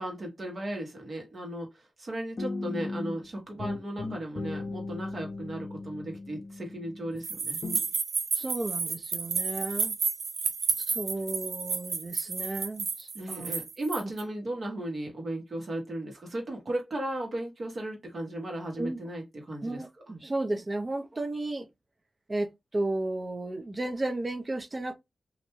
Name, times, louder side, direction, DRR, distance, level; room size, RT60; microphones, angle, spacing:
voice 1, 0.0-1.7 2.0-7.6 13.1-20.1, right 1 dB, 60° right, 1.1 m, -36 dB
sound 1, 2.4-3.3 3.6-7.2 7.6-7.9, left 3 dB, 60° left, 0.5 m, -37 dB
sound 2, 7.2-14.2, right 5 dB, 90° right, 0.4 m, -31 dB
voice 2, 8.3-9.9 10.9-13.5 14.0-14.1 18.8-19.0 19.6-21.7 22.3-24.9, right 2 dB, 35° right, 0.5 m, -33 dB
2.5 x 2.1 x 3.0 m
cardioid pair, 70°, 0 cm